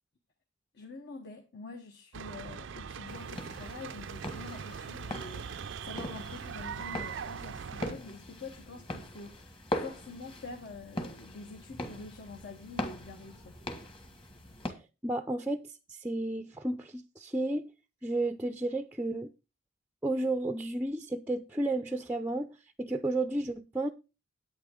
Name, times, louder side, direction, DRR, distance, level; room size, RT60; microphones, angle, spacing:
voice 1, 0.7-13.6, left 3 dB, 55° left, 1.3 m, -46 dB
sound 1, 2.1-7.9, right 6 dB, 60° right, 0.4 m, -41 dB
sound 2, 3.1-14.7, left 1 dB, 25° left, 1.8 m, -41 dB
voice 2, 15.0-17.7 18.0-19.3 20.0-22.5 22.8-23.9, right 2 dB, 10° right, 0.5 m, -32 dB
10.5 x 9.1 x 3.8 m
head